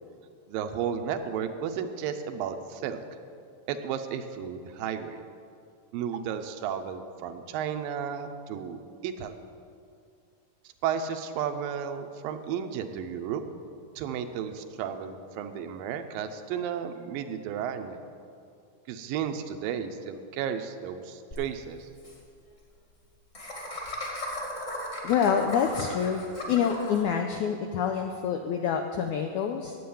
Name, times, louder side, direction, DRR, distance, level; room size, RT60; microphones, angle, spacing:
voice 1, 0.5-3.0 3.7-5.2 5.9-8.8 9.0-9.3 10.8-13.4 14.0-18.0 18.9-21.9, right 8 dB, 80° right, 8 dB, 2.4 m, -33 dB
Laughter, 21.3-21.4 21.7-21.8 22.0-22.2 23.3-27.0, left 1 dB, 25° left, 1.5 m, -37 dB
voice 2, 25.0-29.7, left 7 dB, 85° left, 4 dB, 1.7 m, -27 dB
9.3 x 8.8 x 8.5 m, 2.4 s
omnidirectional pair, 4.2 m